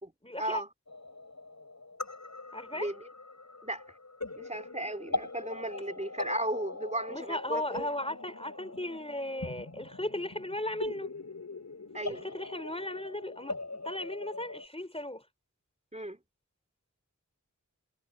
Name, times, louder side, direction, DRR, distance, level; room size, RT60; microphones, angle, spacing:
voice 1, 0.2-0.6 2.5-2.9 7.1-11.1 12.1-15.2, left 1 dB, 20° left, 3.8 m, -36 dB
sound 1, 0.9-14.7, left 3 dB, 60° left, 6.5 m, -41 dB
voice 2, 2.7-3.1 3.6-3.9 4.4-7.9 11.9-12.3 15.9-16.2, right 1 dB, 20° right, 3.8 m, -35 dB
wide cardioid pair, 40°, 32 cm